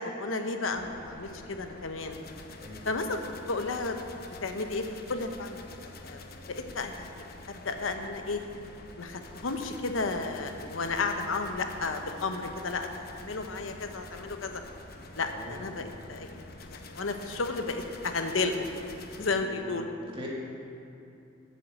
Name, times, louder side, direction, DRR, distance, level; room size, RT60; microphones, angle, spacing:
voice 1, 0.0-2.2 2.8-4.0 4.4-5.6 6.0-6.2 6.5-8.4 9.0-14.6 15.2-16.4 16.7-18.7 19.2-20.0, left 3 dB, 90° left, 6 dB, 0.9 m, -33 dB
sound 1, 0.6-19.3, left 2 dB, 50° left, 0.8 m, -47 dB
voice 2, 15.2-15.7 19.1-20.3, equal, 25° right, -4 dB, 1.9 m, -44 dB
8.0 x 7.7 x 7.8 m, 2.6 s
head